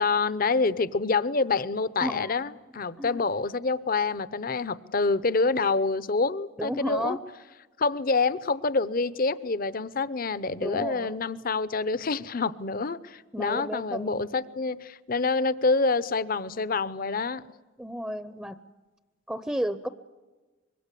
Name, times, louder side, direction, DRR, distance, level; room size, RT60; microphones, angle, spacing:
voice 1, 0.0-7.2 7.8-17.4, left 3 dB, 45° left, 17 dB, 0.8 m, -27 dB
voice 2, 2.0-2.4 3.0-3.2 6.6-7.2 10.6-11.2 13.3-14.2 17.8-18.6 19.3-19.9, equal, 5° right, 12 dB, 0.7 m, -32 dB
25.0 x 22.0 x 8.4 m, 1.2 s
head